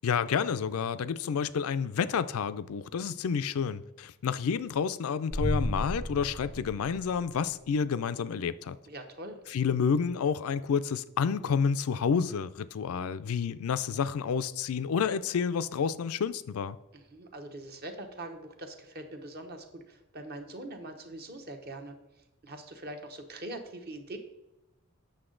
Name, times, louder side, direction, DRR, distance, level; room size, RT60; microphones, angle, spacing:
voice 1, 0.0-8.8 9.5-16.8, left 6 dB, 80° left, 0.4 m, -29 dB
sound 1, 5.3-7.6, left 1 dB, 5° left, 0.3 m, -33 dB
voice 2, 8.9-9.4 16.9-21.9 22.4-24.2, right 1 dB, 45° right, 0.9 m, -43 dB
7.9 x 6.3 x 3.8 m
head